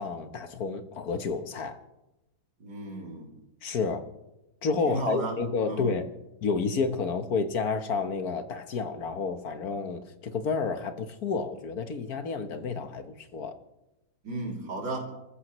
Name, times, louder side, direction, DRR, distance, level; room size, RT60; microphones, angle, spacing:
voice 1, 0.0-1.8 3.6-4.0 4.6-6.1 6.4-13.5, left 4 dB, 60° left, 8 dB, 1.6 m, -30 dB
voice 2, 2.6-3.3 4.9-5.4 5.7-5.9 14.2-15.1, right 2 dB, 90° right, -1 dB, 3.7 m, -34 dB
29.5 x 14.5 x 3.1 m, 0.95 s
omnidirectional pair, 1.8 m